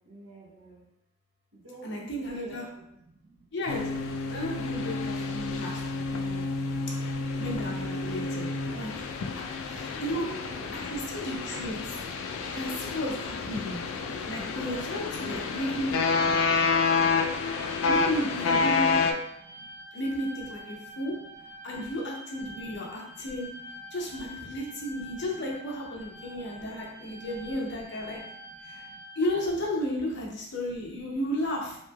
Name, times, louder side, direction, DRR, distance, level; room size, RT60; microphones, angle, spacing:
voice 1, 0.1-0.8 1.6-2.8 9.9-10.8 14.9-15.5, right 1 dB, 75° right, -4 dB, 0.9 m, -48 dB
voice 2, 1.8-2.7 3.5-3.9 4.3-6.4 7.4-8.5 8.8-10.3 10.7-11.9 12.4-13.8 14.3-16.0 17.8-19.0 19.9-21.1 21.6-23.5 23.9-28.2 28.6-28.8 29.2-31.8, equal, 60° left, -1 dB, 0.7 m, -33 dB
sound 1, 3.7-19.1, left 4 dB, 80° left, 0.3 m, -29 dB
sound 2, 7.9-13.6, right 2 dB, 15° right, 0.7 m, -50 dB
sound 3, 14.3-29.5, left 1 dB, 30° left, 1.0 m, -47 dB
3.1 x 2.8 x 2.3 m, 0.76 s
head